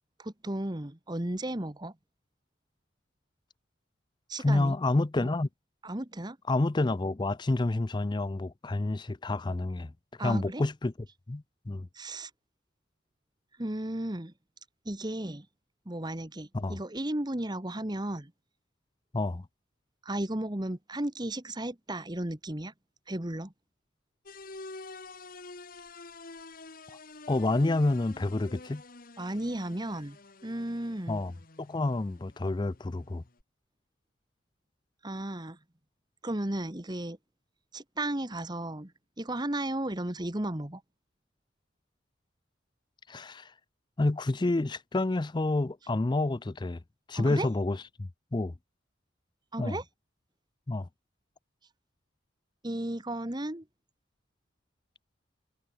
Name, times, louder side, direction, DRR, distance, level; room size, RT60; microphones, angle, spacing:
voice 1, 0.2-1.9 4.3-4.8 5.2-5.3 5.8-6.4 10.2-10.6 11.9-12.3 13.6-14.3 14.8-15.5 15.8-18.3 20.0-22.7 23.1-23.5 29.2-31.2 35.0-35.6 36.2-37.2 37.7-38.9 39.2-40.8 47.1-47.5 49.5-49.8 52.6-53.7, right 1 dB, 20° right, 1.4 m, -34 dB
voice 2, 4.4-5.5 6.5-9.9 10.2-10.9 11.3-11.9 16.5-16.8 19.1-19.4 27.3-28.8 31.1-31.3 31.6-33.2 43.1-43.5 44.0-46.8 47.1-48.5 49.6-49.8 50.7-50.9, left 2 dB, 25° left, 0.5 m, -29 dB
sound 1, 24.3-33.4, left 3 dB, 45° left, 1.6 m, -48 dB
head